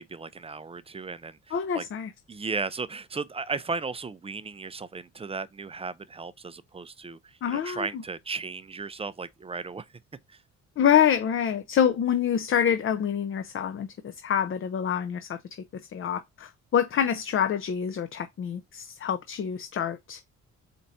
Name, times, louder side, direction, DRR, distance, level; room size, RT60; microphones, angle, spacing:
voice 1, 0.0-1.8 2.3-9.9 10.3-10.4, right 4 dB, 20° right, 0.4 m, -35 dB
voice 2, 1.5-2.1 7.4-7.9 10.8-15.4 15.9-20.2, left 8 dB, 45° left, 0.5 m, -26 dB
4.5 x 2.5 x 4.1 m
cardioid pair, 90°, 30 cm